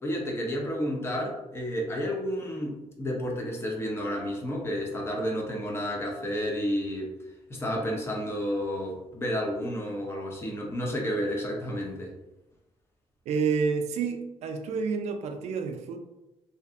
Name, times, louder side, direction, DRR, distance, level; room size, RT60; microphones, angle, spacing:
voice 1, 0.0-7.1 7.5-12.1, equal, 20° left, -1 dB, 0.5 m, -31 dB
voice 2, 13.3-16.0, right 5 dB, 75° right, 6 dB, 0.4 m, -29 dB
2.6 x 2.5 x 2.3 m, 0.98 s
cardioid pair, 155°, 11 cm